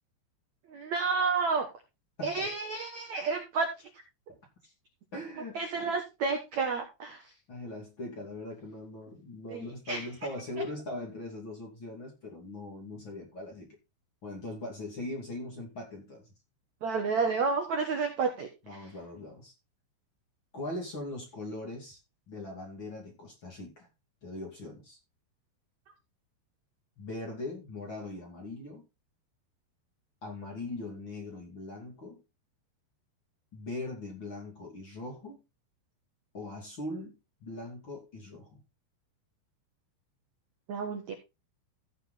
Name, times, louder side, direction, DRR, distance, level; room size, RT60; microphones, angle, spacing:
voice 1, 0.7-1.7 2.2-3.9 5.5-7.2 9.5-10.0 16.8-18.9 40.7-41.1, right 4 dB, 70° right, 1.7 m, -31 dB
voice 2, 5.1-5.9 7.5-13.7 14.2-16.3 18.7-19.5 20.5-22.0 22.3-23.9 24.2-25.0 27.0-28.9 30.2-32.2 33.5-35.4 36.3-38.6, left 2 dB, 30° left, 2.6 m, -40 dB
16.0 x 5.3 x 4.0 m
omnidirectional pair, 5.4 m